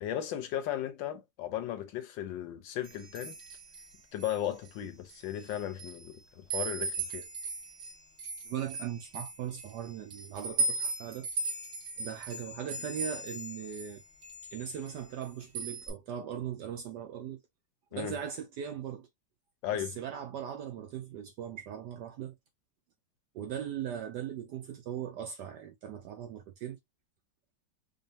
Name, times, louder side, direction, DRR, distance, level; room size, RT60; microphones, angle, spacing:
voice 1, 0.0-3.4 4.1-7.2 17.9-18.2 19.6-19.9, left 11 dB, 75° left, 1.2 m, -36 dB
sound 1, 2.8-4.7 5.1-6.1 6.5-13.9 14.2-15.2 15.5-15.9, right 3 dB, 55° right, 2.3 m, -37 dB
voice 2, 8.4-11.6 12.0-14.0 14.5-17.4 17.9-19.1 19.7-22.4 23.3-26.8, right 9 dB, 75° right, 1.0 m, -39 dB
5.2 x 2.4 x 2.7 m
omnidirectional pair, 2.3 m